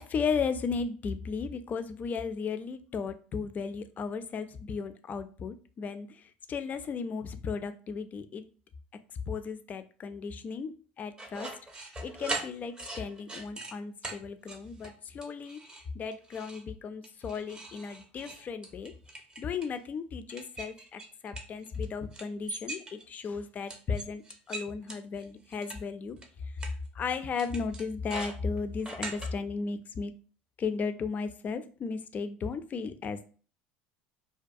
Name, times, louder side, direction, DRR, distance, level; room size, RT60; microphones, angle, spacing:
voice 1, 0.0-6.1 6.5-8.4 9.3-11.5 11.8-15.6 15.9-18.9 19.4-26.2 27.0-30.1 30.6-33.4, left 5 dB, 35° left, 10 dB, 0.3 m, -35 dB
sound 1, 11.2-13.7 14.0-14.2 14.5-14.9 15.2-15.8 16.1-16.6 17.0-19.8 20.3-21.9 22.1-23.2 23.7-25.8 26.2-26.3 26.6-26.7 27.4-29.3, right 2 dB, 15° right, 0.6 m, -40 dB
2.3 x 2.3 x 2.5 m, 0.39 s
hypercardioid pair, 80°, 5 cm